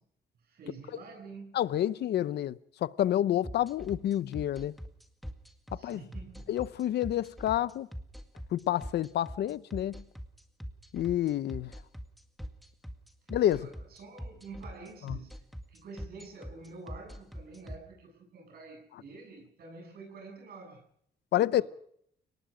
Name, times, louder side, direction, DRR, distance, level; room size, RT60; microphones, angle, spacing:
voice 1, 0.4-1.6 5.7-6.6 13.2-20.8 21.5-21.6, right 3 dB, 65° right, 7.9 m, -48 dB
voice 2, 1.5-4.8 5.7-6.0 6.5-7.9 8.5-10.0 10.9-11.7 13.3-13.7 15.1-15.2 21.3-21.6, left 12 dB, 75° left, 0.8 m, -29 dB
sound 1, 3.4-17.8, equal, ahead, 1.9 m, -42 dB
30.0 x 19.0 x 5.1 m
cardioid pair, 150°, 17 cm